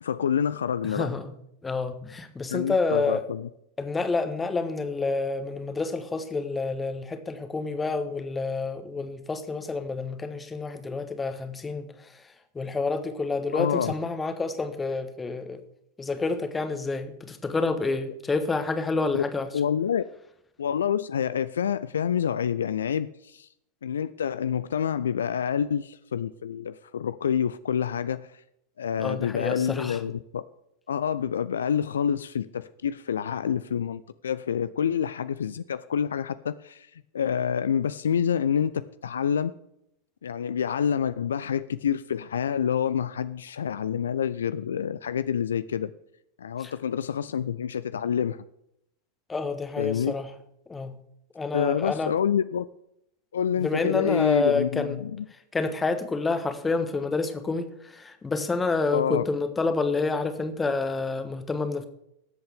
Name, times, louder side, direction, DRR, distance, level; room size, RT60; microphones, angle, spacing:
voice 1, 0.0-1.1 2.5-3.5 13.5-13.9 19.1-19.2 19.5-20.0 20.6-23.5 23.8-28.3 28.8-30.4 30.9-36.9 37.1-39.5 40.2-45.9 46.4-48.4 49.8-50.1 51.5-52.7 53.3-55.2 58.9-59.2, left 8 dB, 65° left, 14 dB, 0.4 m, -27 dB
voice 2, 0.8-1.3 1.6-3.2 3.8-11.9 12.5-15.6 16.0-19.5 29.0-30.0 46.6-46.7 49.3-50.3 50.7-50.9 51.3-52.1 53.6-55.0 55.5-61.8, left 3 dB, 15° left, 8 dB, 1.3 m, -28 dB
20.0 x 7.9 x 3.6 m, 0.79 s
figure-of-eight pair, 90°, 0 cm